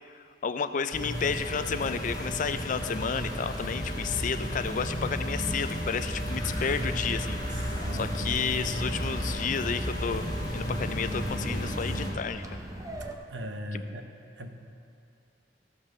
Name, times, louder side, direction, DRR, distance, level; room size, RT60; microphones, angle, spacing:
voice 1, 0.1-10.3 10.5-12.4, left 6 dB, 45° left, 11 dB, 0.4 m, -31 dB
sound 1, 0.9-12.1, equal, 25° left, 2.0 m, -33 dB
sound 2, 6.3-13.2, right 1 dB, 20° right, 0.6 m, -41 dB
voice 2, 7.5-8.3 13.0-14.1 14.4-14.5, equal, 80° right, 5 dB, 0.8 m, -38 dB
14.0 x 5.3 x 6.1 m, 2.5 s
head